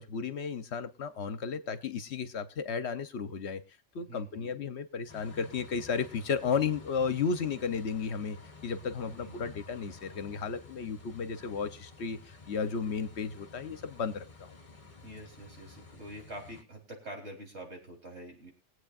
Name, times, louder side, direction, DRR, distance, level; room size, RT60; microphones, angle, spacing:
voice 1, 0.0-3.6 3.9-8.4 8.6-14.6, left 5 dB, 70° left, 12 dB, 1.1 m, -34 dB
voice 2, 4.1-4.6 9.1-9.5 15.0-18.5, right 1 dB, 70° right, 0 dB, 3.9 m, -46 dB
sound 1, 5.1-16.6, left 3 dB, 30° left, 1.3 m, -52 dB
22.5 x 8.2 x 2.5 m, 0.30 s
omnidirectional pair, 1.2 m